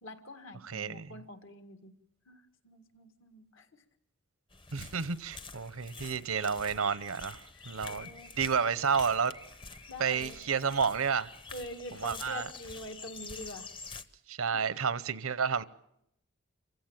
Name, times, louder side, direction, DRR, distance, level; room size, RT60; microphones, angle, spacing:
voice 1, 0.0-1.9 2.3-3.8 7.5-8.4 9.9-10.4 11.5-13.7 14.5-14.6, left 1 dB, 65° left, 1.9 m, -46 dB
voice 2, 0.6-1.1 4.7-9.3 10.0-11.3 12.0-12.5 14.3-15.6, right 6 dB, 80° right, 0.8 m, -31 dB
sound 1, 4.5-14.0, left 4 dB, 25° left, 0.8 m, -47 dB
26.5 x 16.0 x 8.9 m
head